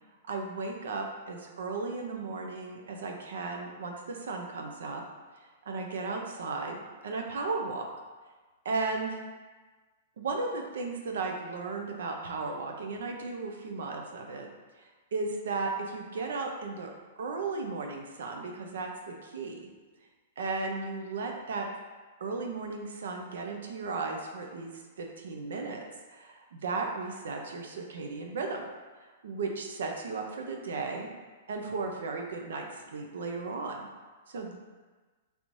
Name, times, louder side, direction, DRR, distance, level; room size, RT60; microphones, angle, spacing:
voice 1, 0.3-5.0 5.7-6.8 7.0-7.9 8.6-9.2 10.2-14.5 14.8-16.9 17.2-19.7 20.4-21.7 22.2-24.7 25.0-25.8 26.1-28.6 29.2-31.1 31.5-33.9 34.3-34.6, right 3 dB, 75° right, 2 dB, 0.5 m, -35 dB
3.3 x 3.1 x 2.6 m, 1.3 s
hypercardioid pair, 175°, 0 cm